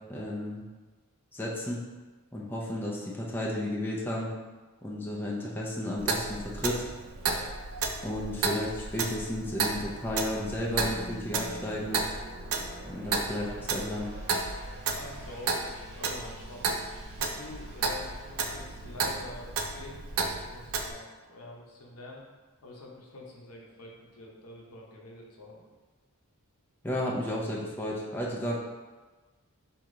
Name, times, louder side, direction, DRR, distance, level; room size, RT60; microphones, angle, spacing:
voice 1, 0.1-0.6 1.3-1.8 2.3-4.3 4.8-6.8 8.0-12.0 12.9-14.1 26.8-28.5, left 1 dB, 10° left, -4 dB, 0.6 m, -33 dB
Clock, 6.0-20.9, right 4 dB, 70° right, 0.5 m, -33 dB
voice 2, 7.2-7.5 13.0-13.5 14.9-16.7 17.2-22.2 22.6-25.6, left 2 dB, 80° left, -1 dB, 0.9 m, -47 dB
sound 1, 9.9-21.5, right 2 dB, 35° right, 1.1 m, -50 dB
4.8 x 2.9 x 3.8 m, 1.3 s
head